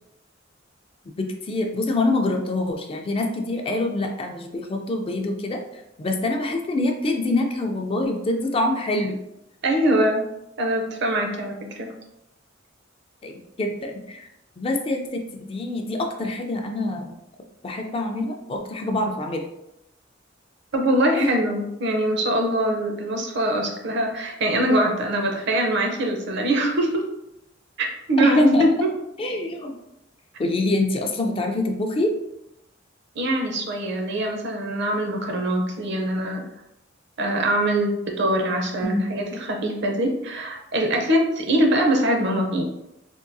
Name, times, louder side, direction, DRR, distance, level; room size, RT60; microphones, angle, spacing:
voice 1, 1.2-5.6 6.0-9.2 13.2-14.3 14.6-15.2 15.5-17.2 17.6-19.5 21.1-21.4 28.2-28.7 29.2-29.7 30.4-32.2 38.8-39.1, left 2 dB, 30° left, 3 dB, 0.3 m, -24 dB
voice 2, 9.6-10.2 10.6-11.9 20.7-27.0 27.8-28.9 33.2-36.4 37.2-42.6, right 1 dB, 65° right, 2 dB, 0.6 m, -23 dB
3.6 x 2.3 x 2.6 m, 0.84 s
head